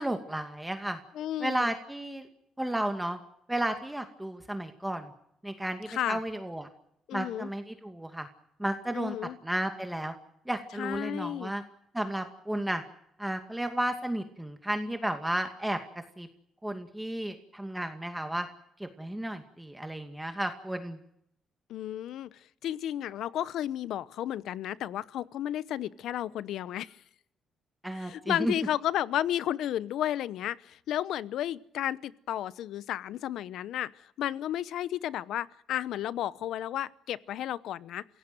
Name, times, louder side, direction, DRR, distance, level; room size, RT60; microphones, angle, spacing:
voice 1, 0.0-1.0 1.4-2.3 2.6-3.2 3.5-5.1 5.4-6.7 7.1-8.3 8.6-10.1 10.5-11.6 11.9-12.8 13.2-15.8 16.2-16.3 16.6-18.5 18.8-21.0 27.8-28.5, right 1 dB, 5° right, 6 dB, 2.3 m, -33 dB
voice 2, 1.1-1.7 5.9-6.2 7.1-7.5 8.9-9.4 10.8-11.5 21.7-22.3 22.6-27.0 28.0-38.0, left 11 dB, 80° left, 18 dB, 0.9 m, -33 dB
27.0 x 17.0 x 7.9 m, 0.75 s
cardioid pair, 90°, 0 cm